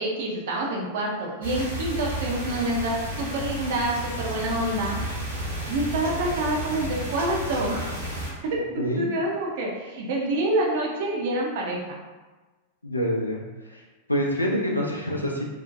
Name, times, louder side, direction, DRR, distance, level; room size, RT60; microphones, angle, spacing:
voice 1, 0.0-5.0 5.7-7.9 8.5-12.0, right 1 dB, 55° right, -1 dB, 0.5 m, -27 dB
sound 1, 1.4-8.3, equal, 70° right, 1.0 m, -32 dB
voice 2, 8.8-9.1 12.8-13.8 14.1-15.4, equal, 85° left, -1 dB, 0.4 m, -26 dB
2.6 x 2.1 x 2.4 m, 1.2 s
figure-of-eight pair, 90°, 0 cm